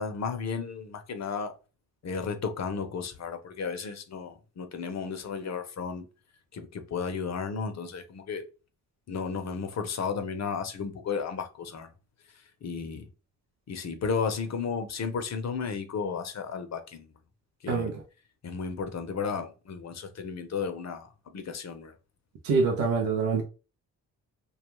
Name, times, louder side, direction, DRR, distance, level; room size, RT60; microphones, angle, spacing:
voice 1, 0.0-1.5 2.0-6.1 6.5-8.4 9.1-11.9 12.6-13.1 13.7-17.1 17.6-17.9 18.4-21.9, left 5 dB, 50° left, 0.6 m, -33 dB
voice 2, 22.4-23.4, right 4 dB, 85° right, 0.6 m, -25 dB
2.3 x 2.2 x 3.0 m
supercardioid pair, 50°, 35 cm